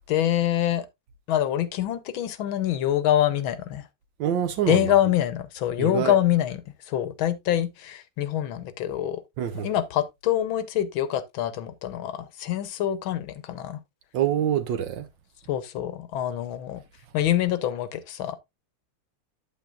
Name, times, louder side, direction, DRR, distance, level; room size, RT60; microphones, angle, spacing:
voice 1, 0.1-0.9 1.3-3.8 4.7-6.6 6.9-9.2 9.6-13.8 15.5-16.8 17.1-18.4, left 11 dB, 75° left, 1.5 m, -25 dB
voice 2, 4.2-5.0 5.8-6.2 9.4-9.7 14.1-15.1, right 10 dB, 70° right, 1.3 m, -26 dB
8.5 x 8.1 x 2.5 m
omnidirectional pair, 2.4 m